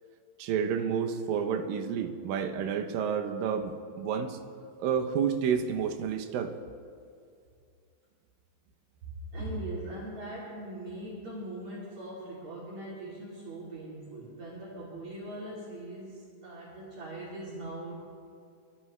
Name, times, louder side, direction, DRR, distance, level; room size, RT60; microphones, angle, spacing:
voice 1, 0.4-4.4 4.8-6.5, right 7 dB, 85° right, 5 dB, 2.6 m, -30 dB
voice 2, 9.0-18.0, right 1 dB, 55° right, -7 dB, 4.1 m, -40 dB
24.5 x 13.0 x 3.2 m, 2.4 s
omnidirectional pair, 3.9 m